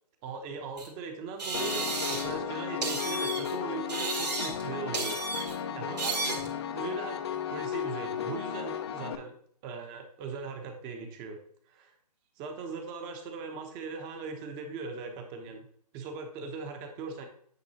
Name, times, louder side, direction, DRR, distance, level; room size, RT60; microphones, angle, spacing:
voice 1, 0.2-9.3 9.6-11.4 11.7-11.9 12.4-15.7 15.9-17.3, right 4 dB, 20° right, 5 dB, 0.9 m, -40 dB
sound 1, 0.8-0.9 1.4-2.4 2.8-3.5 3.9-4.7 4.9-5.6 6.0-6.5, right 3 dB, 80° right, 2.4 m, -33 dB
Piano, 1.5-9.1, left 8 dB, 40° left, 0.6 m, -34 dB
9.4 x 5.2 x 2.9 m, 0.62 s
hypercardioid pair, 145°, 21 cm